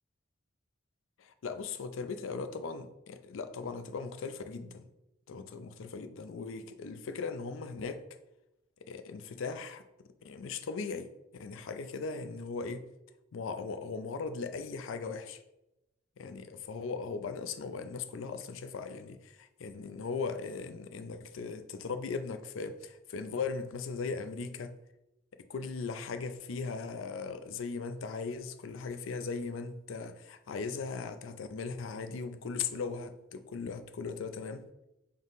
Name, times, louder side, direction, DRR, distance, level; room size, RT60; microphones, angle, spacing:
voice 1, 1.2-4.9 5.3-8.0 8.9-9.8 10.2-11.1 11.4-12.9 13.3-15.4 16.2-24.7 25.5-34.6, left 4 dB, 80° left, 0.4 m, -38 dB
3.7 x 3.0 x 3.9 m
head